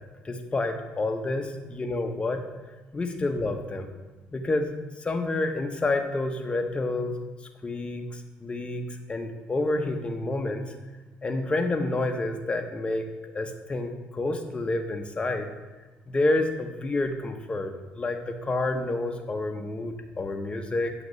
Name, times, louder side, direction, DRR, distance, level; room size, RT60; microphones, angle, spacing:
voice 1, 0.2-2.4 2.9-3.9 4.3-4.7 5.0-7.2 7.6-10.7 11.2-13.1 13.3-15.5 16.1-20.9, left 2 dB, 25° left, 5 dB, 0.7 m, -29 dB
7.8 x 2.9 x 5.2 m, 1.2 s
supercardioid pair, 85°, 4 cm